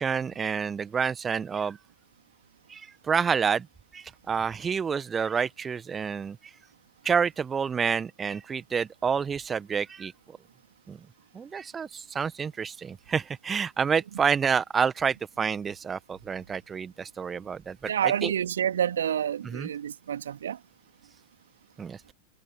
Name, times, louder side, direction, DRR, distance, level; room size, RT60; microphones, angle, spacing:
voice 1, 0.0-1.8 2.7-3.7 3.9-6.5 7.0-10.1 10.9-11.0 11.3-18.3 19.4-19.7 21.8-22.0, right 6 dB, 20° right, 1.5 m, -28 dB
voice 2, 17.9-20.6, right 9 dB, 65° right, 3.0 m, -28 dB
figure-of-eight pair, 90°, 0 cm